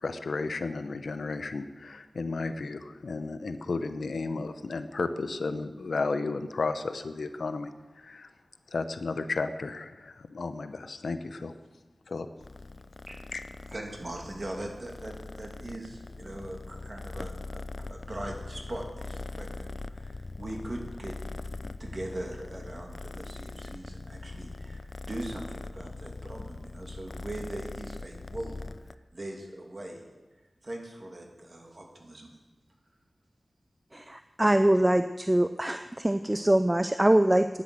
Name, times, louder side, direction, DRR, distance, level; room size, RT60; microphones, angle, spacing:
voice 1, 0.0-7.7 8.0-8.3 8.7-11.5 12.1-12.3 13.3-13.4, left 3 dB, 85° left, 10 dB, 0.8 m, -33 dB
Purr, 12.4-28.9, left 3 dB, 55° left, 0.4 m, -41 dB
voice 2, 13.7-21.2 21.5-28.6 29.1-30.0 30.6-32.3, right 1 dB, 45° right, 1 dB, 2.6 m, -41 dB
voice 3, 33.9-37.5, right 1 dB, 20° right, 10 dB, 0.5 m, -23 dB
10.0 x 10.0 x 7.6 m, 1.2 s
wide cardioid pair, 55°, 0 cm